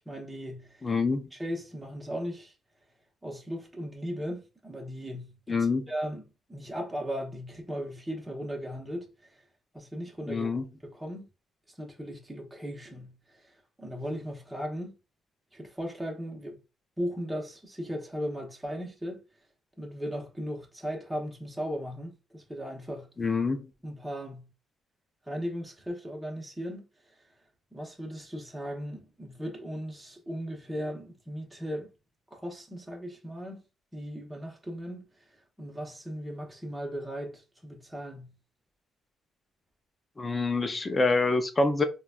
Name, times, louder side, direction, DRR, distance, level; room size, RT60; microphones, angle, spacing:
voice 1, 0.1-0.9 1.3-2.5 3.2-6.2 6.5-9.4 9.7-10.5 10.8-11.3 11.8-13.5 13.8-15.0 15.5-16.6 17.0-19.2 19.8-23.1 23.8-24.5 25.3-26.8 27.7-31.9 32.3-33.6 33.9-35.1 35.6-38.3, equal, 10° right, 1.0 m, -37 dB
voice 2, 0.8-1.3 5.5-5.8 10.3-10.6 23.2-23.7 40.2-41.8, left 3 dB, 25° left, 0.6 m, -26 dB
3.9 x 2.3 x 2.4 m
cardioid pair, 90°, 0 cm